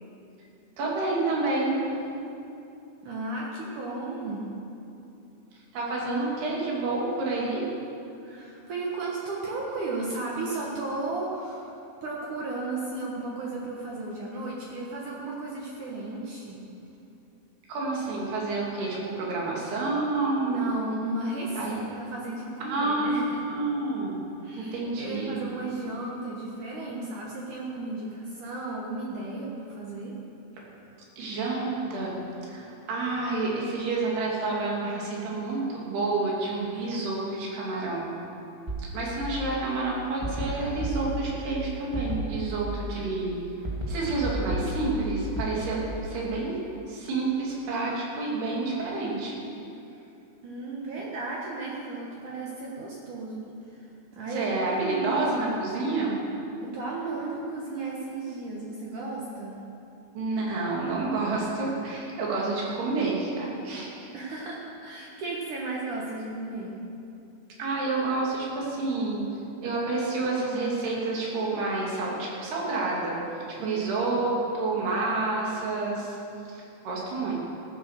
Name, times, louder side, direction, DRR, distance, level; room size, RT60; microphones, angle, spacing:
voice 1, 0.8-1.8 5.5-7.7 17.7-20.7 21.6-21.8 22.6-23.2 23.5-24.2 24.6-25.5 31.2-32.2 32.5-38.1 38.8-43.4 43.9-45.8 46.1-49.4 54.3-56.1 60.1-64.1 67.6-69.2 69.6-76.2 76.5-77.4, right 3 dB, 90° right, -4 dB, 4.5 m, -29 dB
voice 2, 3.0-4.5 8.2-11.7 12.0-16.6 20.4-23.4 24.4-30.2 45.7-45.9 50.4-55.5 56.6-59.6 62.3-62.4 64.1-66.8 73.6-74.0, right 2 dB, 60° right, -3 dB, 2.4 m, -34 dB
sound 1, 38.7-39.6 40.2-41.6 41.9-43.0 43.6-45.5, right 1 dB, 30° right, 0.4 m, -33 dB
14.5 x 9.9 x 6.6 m, 2.8 s
omnidirectional pair, 4.5 m